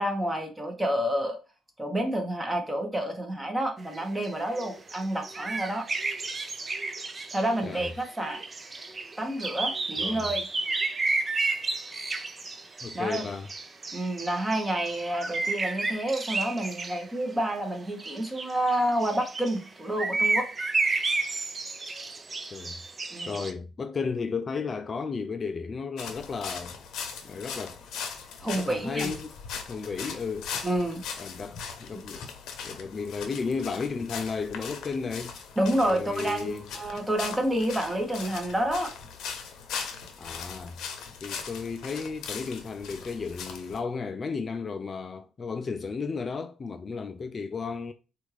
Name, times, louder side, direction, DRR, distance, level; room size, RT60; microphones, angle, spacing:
voice 1, 0.0-1.4 1.8-5.9 7.3-8.4 9.2-10.5 12.9-13.2 13.9-20.5 23.1-23.4 28.4-29.1 30.6-31.0 31.9-32.0 35.6-38.9, right 1 dB, 15° right, 1.1 m, -29 dB
sound 1, 3.8-17.0 18.0-19.7 20.0-23.5, right 3 dB, 30° right, 0.5 m, -32 dB
voice 2, 12.8-13.5 22.5-22.8 23.3-26.8 27.2-27.8 28.4-29.3 29.7-30.5 31.2-32.3 32.6-35.4 35.9-36.7 40.2-40.8 41.2-47.9, left 5 dB, 40° left, 0.3 m, -34 dB
sound 2, 26.0-43.8, left 6 dB, 80° left, 0.7 m, -40 dB
4.3 x 2.4 x 3.1 m
cardioid pair, 90°, 0 cm